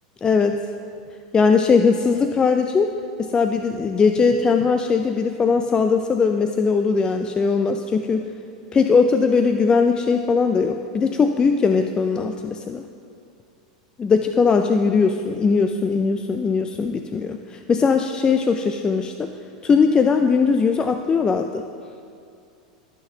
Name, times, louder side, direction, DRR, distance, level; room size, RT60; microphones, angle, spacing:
voice 1, 0.2-0.6 1.3-2.9 3.2-8.3 8.7-12.8 14.0-19.3 19.6-21.6, left 5 dB, 20° left, 6 dB, 0.3 m, -19 dB
14.0 x 6.0 x 2.8 m, 2.4 s
hypercardioid pair, 105°, 4 cm